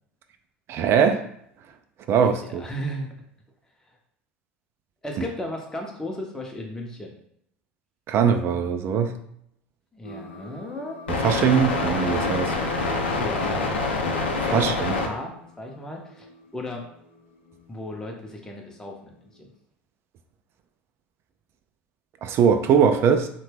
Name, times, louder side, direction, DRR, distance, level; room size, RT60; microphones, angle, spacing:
voice 1, 0.7-1.2 2.1-2.6 8.1-9.1 11.1-12.6 14.4-14.9 22.2-23.3, right 7 dB, 45° right, 8 dB, 0.3 m, -21 dB
voice 2, 2.4-3.1 5.0-7.2 9.9-11.0 13.2-14.1 14.5-15.3 15.6-16.3 16.5-16.9 17.7-19.5, left 1 dB, 10° left, 0 dB, 0.6 m, -35 dB
sound 1, 10.0-15.1, left 3 dB, 85° left, 0.5 m, -26 dB
2.8 x 2.2 x 3.2 m, 0.72 s
hypercardioid pair, 70°, 6 cm